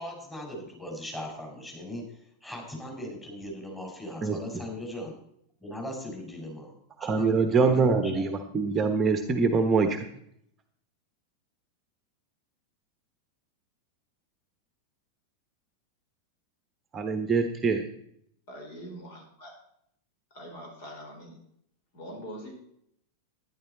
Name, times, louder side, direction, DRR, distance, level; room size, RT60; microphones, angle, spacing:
voice 1, 0.0-5.1 5.6-6.7 7.0-8.3, left 1 dB, 10° left, -1 dB, 5.0 m, -39 dB
voice 2, 7.0-10.0 16.9-17.8, right 4 dB, 20° right, 7 dB, 1.1 m, -24 dB
voice 3, 18.5-19.5 20.3-21.4 21.9-22.5, equal, 50° left, 1 dB, 4.7 m, -43 dB
12.0 x 11.0 x 4.2 m, 0.71 s
figure-of-eight pair, 90°, 0 cm